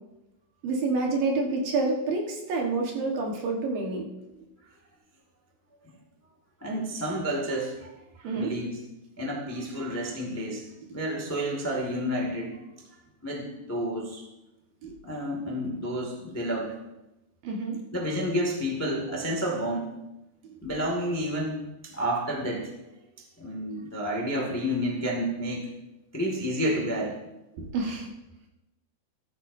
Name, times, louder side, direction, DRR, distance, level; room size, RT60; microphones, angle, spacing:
voice 1, 0.6-4.0 8.2-8.5 14.8-14.9 17.4-17.8 27.6-28.1, right 3 dB, 65° right, 0 dB, 3.1 m, -28 dB
voice 2, 6.6-7.9 8.2-8.8 9.2-12.6 13.2-14.2 15.0-16.7 17.9-19.9 20.6-22.7 23.4-25.7 26.1-27.2, equal, 20° left, -1 dB, 0.4 m, -30 dB
14.5 x 12.5 x 2.7 m, 0.95 s
omnidirectional pair, 4.7 m